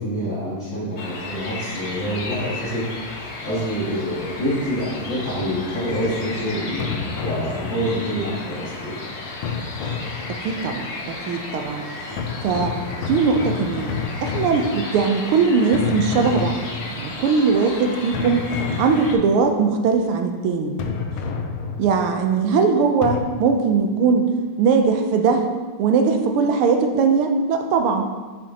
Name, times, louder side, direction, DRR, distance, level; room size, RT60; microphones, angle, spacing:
voice 1, 0.0-2.9 3.2-9.0, equal, 35° left, -12 dB, 2.0 m, -26 dB
sound 1, 1.0-19.2, left 3 dB, 55° left, 1.2 m, -34 dB
sound 2, 6.8-8.2 9.4-10.7 12.2-15.3 15.7-17.2 18.1-19.5 20.8-22.2 23.0-23.2, left 6 dB, 80° left, 1.5 m, -29 dB
voice 2, 10.3-11.8 12.4-12.8 13.1-18.5 18.8-20.8 21.8-24.3 24.6-25.5 25.8-28.1, right 5 dB, 85° right, 5 dB, 1.5 m, -20 dB
7.4 x 6.7 x 2.8 m, 1.4 s
omnidirectional pair, 2.4 m